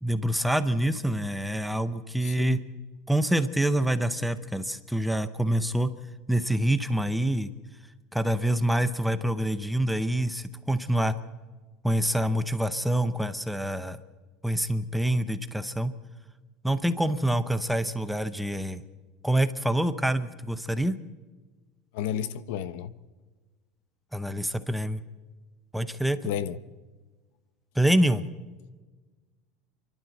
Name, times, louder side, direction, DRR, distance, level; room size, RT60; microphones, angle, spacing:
voice 1, 0.0-2.6 3.1-5.9 6.3-7.5 8.1-11.2 11.8-14.0 14.4-15.9 16.6-18.8 19.2-20.9 24.1-25.0 25.7-26.3 27.8-28.2, right 1 dB, ahead, 11 dB, 0.6 m, -26 dB
voice 2, 2.2-2.6 21.9-22.9 26.2-26.6, left 10 dB, 65° left, 15 dB, 0.9 m, -32 dB
29.0 x 12.0 x 7.8 m, 1.3 s
cardioid pair, 165°, 0 cm